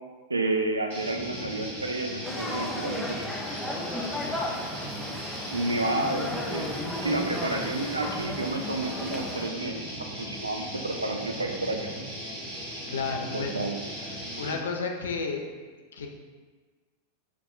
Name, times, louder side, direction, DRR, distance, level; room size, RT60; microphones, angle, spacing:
voice 1, 0.3-3.2 5.5-6.7 7.0-9.9 10.2-11.9 13.3-13.8, right 2 dB, 80° right, 3 dB, 0.4 m, -30 dB
sound 1, 0.9-14.6, equal, 55° right, 1.2 m, -38 dB
sound 2, 2.2-9.5, left 1 dB, 5° left, 0.4 m, -35 dB
voice 2, 12.9-13.5 14.4-15.4 15.9-16.1, left 4 dB, 65° left, 2 dB, 0.5 m, -31 dB
5.9 x 2.5 x 2.5 m, 1.4 s
figure-of-eight pair, 90°, 0 cm